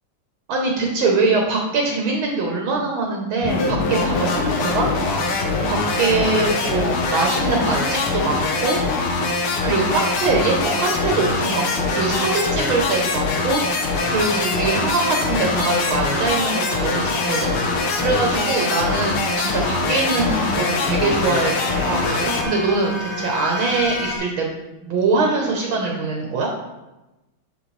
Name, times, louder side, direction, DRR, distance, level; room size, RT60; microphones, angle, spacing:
voice 1, 0.5-5.3 5.7-8.8 9.6-17.5 17.9-21.5 21.8-24.5 24.8-26.5, right 3 dB, 70° right, 0 dB, 1.7 m, -23 dB
sound 1, 3.4-22.4, left 3 dB, 90° left, 1.8 m, -23 dB
sound 2, 14.0-24.2, left 1 dB, 35° left, 1.5 m, -32 dB
7.1 x 5.2 x 3.2 m, 1.0 s
omnidirectional pair, 2.4 m